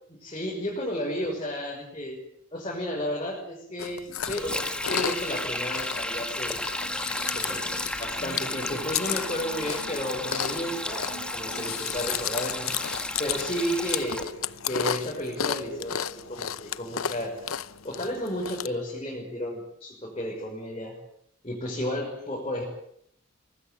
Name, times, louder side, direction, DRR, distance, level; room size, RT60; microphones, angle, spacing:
voice 1, 0.2-2.2 2.5-6.6 7.3-7.6 8.0-12.7 13.2-14.3 14.7-17.4 17.8-21.0 21.4-22.6, equal, 30° left, -2 dB, 6.0 m, -32 dB
Chewing mastication, 3.8-18.7, left 8 dB, 80° left, 0.9 m, -34 dB
Sink (filling or washing), 4.2-14.2, left 1 dB, 5° left, 2.0 m, -33 dB
sound 1, 6.7-16.0, left 1 dB, 65° left, 4.0 m, -47 dB
24.0 x 20.0 x 9.3 m, 0.73 s
head